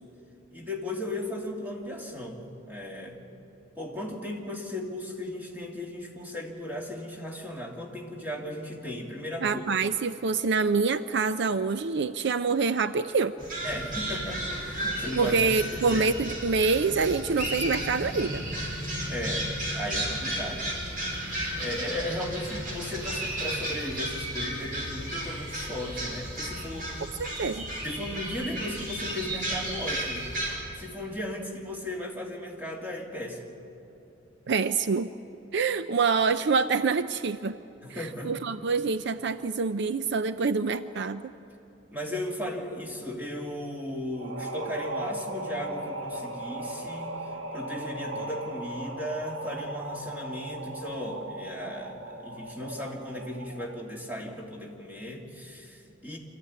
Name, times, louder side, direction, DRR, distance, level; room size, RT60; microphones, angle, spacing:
voice 1, 0.5-3.2 3.8-9.6 13.6-15.4 15.7-16.1 19.1-20.7 21.6-26.9 27.8-30.4 30.8-33.5 37.8-38.3 41.9-47.1 47.5-56.2, left 1 dB, 10° right, -1 dB, 2.8 m, -36 dB
voice 2, 9.4-13.4 15.2-18.4 27.2-27.7 34.5-35.1 35.5-37.6 37.9-41.2, right 4 dB, 65° right, 12 dB, 0.5 m, -26 dB
sound 1, 13.4-30.5, right 1 dB, 45° right, 5.3 m, -33 dB
sound 2, 44.1-53.9, right 1 dB, 90° right, 1.7 m, -37 dB
25.0 x 14.0 x 9.7 m, 2.9 s
head